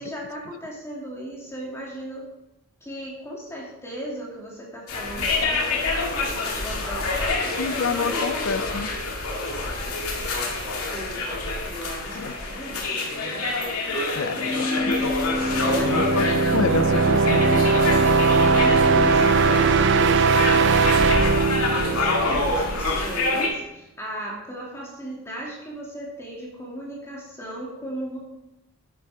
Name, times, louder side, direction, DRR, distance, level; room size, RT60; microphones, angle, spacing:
voice 1, 0.0-2.3 2.8-8.5 9.4-13.5 15.4-16.6 17.9-28.2, right 1 dB, 10° left, -3 dB, 2.4 m, -37 dB
sound 1, 4.9-23.5, left 3 dB, 75° left, 2.1 m, -27 dB
voice 2, 7.5-8.9 12.1-12.4 14.1-15.3 15.8-17.6, left 5 dB, 60° left, 14 dB, 0.5 m, -29 dB
Keyboard (musical), 14.3-20.3, left 1 dB, 25° right, 1.4 m, -30 dB
sound 2, 15.2-23.0, right 4 dB, 50° right, 0.4 m, -20 dB
11.0 x 8.8 x 3.5 m, 0.92 s
head